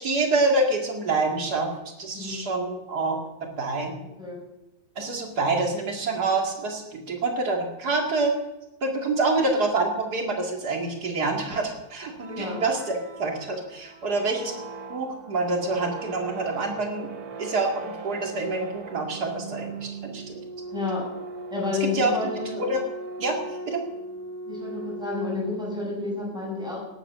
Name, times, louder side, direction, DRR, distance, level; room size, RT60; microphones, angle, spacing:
voice 1, 0.0-1.7 2.0-3.2 3.6-4.0 5.0-8.3 8.8-14.5 14.9-17.1 17.4-20.4 21.9-22.3 22.6-22.8 23.2-23.4 23.7-23.8, right 3 dB, 90° right, 2 dB, 2.8 m, -26 dB
sound 1, 12.1-25.9, right 3 dB, 70° right, 1.8 m, -39 dB
voice 2, 20.7-21.0 21.5-22.6 24.5-26.8, left 3 dB, ahead, -5 dB, 7.9 m, -30 dB
19.0 x 9.0 x 6.8 m, 0.94 s
omnidirectional pair, 1.7 m